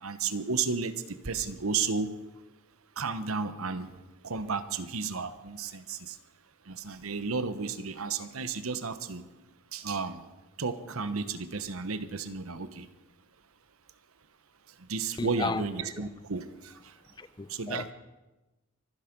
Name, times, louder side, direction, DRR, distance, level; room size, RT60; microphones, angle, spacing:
voice 1, 0.0-2.1 3.0-3.9 4.2-6.2 6.7-9.2 9.7-10.3 10.6-12.9 14.9-16.7 17.5-17.9, right 4 dB, 85° right, 1.1 m, -33 dB
voice 2, 15.2-15.7 16.0-16.1 17.2-17.9, left 3 dB, 20° left, 0.5 m, -34 dB
24.5 x 10.5 x 5.3 m
head